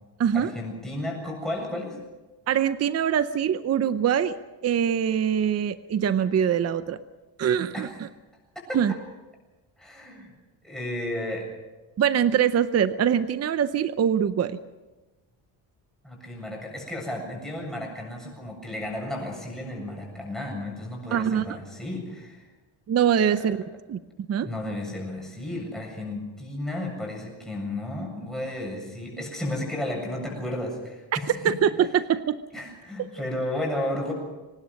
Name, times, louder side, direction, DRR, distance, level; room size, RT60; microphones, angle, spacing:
voice 1, 0.3-2.0 7.7-8.0 8.7-9.0 9.8-10.3 10.6-11.5 16.0-22.5 24.4-31.6 32.5-34.1, left 1 dB, ahead, -1 dB, 7.5 m, -33 dB
voice 2, 2.5-4.3 4.6-7.0 7.4-7.9 8.7-8.9 12.0-14.6 21.1-21.4 22.9-23.6 23.9-24.0 24.3-24.5 31.4-32.4, right 8 dB, 35° right, 12 dB, 0.7 m, -23 dB
24.5 x 19.0 x 6.4 m, 1.1 s
cardioid pair, 160°, 44 cm